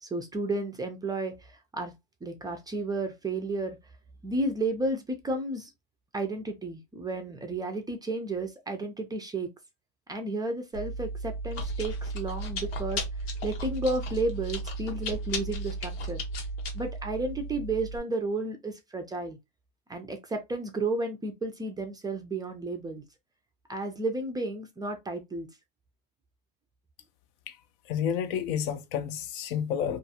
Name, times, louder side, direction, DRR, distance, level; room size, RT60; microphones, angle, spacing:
voice 1, 0.0-1.9 2.2-3.8 4.2-5.7 6.1-9.5 10.1-13.0 13.4-16.2 16.7-19.4 19.9-23.0 23.7-25.5, right 2 dB, 15° right, 0.4 m, -32 dB
Chewing mastication, 10.7-18.0, right 1 dB, 90° left, 0.9 m, -34 dB
voice 2, 27.9-30.0, left 8 dB, 65° left, 0.5 m, -30 dB
2.4 x 2.3 x 2.7 m
supercardioid pair, 110°, 30 cm